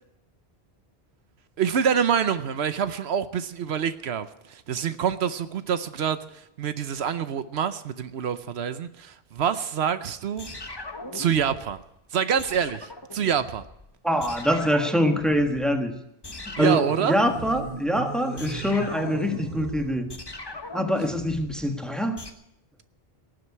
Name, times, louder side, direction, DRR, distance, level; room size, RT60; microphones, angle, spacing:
voice 1, 1.6-10.5 11.1-11.8 12.1-13.6 16.6-17.2, right 8 dB, 80° right, 12 dB, 1.0 m, -26 dB
sound 1, 10.4-11.9 12.4-13.9 14.2-15.8 16.2-22.3, left 2 dB, 25° left, 1.1 m, -39 dB
voice 2, 14.0-16.0 16.5-20.1 20.7-22.2, equal, ahead, 5 dB, 1.4 m, -24 dB
sound 2, 16.6-20.1, right 5 dB, 45° right, 1.1 m, -36 dB
18.0 x 7.8 x 9.6 m, 0.81 s
omnidirectional pair, 1.1 m